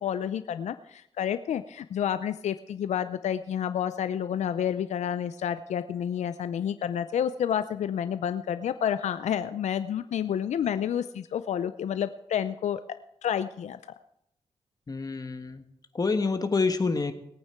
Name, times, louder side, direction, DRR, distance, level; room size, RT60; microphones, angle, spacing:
voice 1, 0.0-12.8 13.2-13.8, left 9 dB, 75° left, 11 dB, 0.5 m, -29 dB
voice 2, 14.9-15.6 15.9-17.1, left 4 dB, 30° left, 8 dB, 1.4 m, -27 dB
19.5 x 8.8 x 4.5 m, 0.80 s
cardioid pair, 85°, 12 cm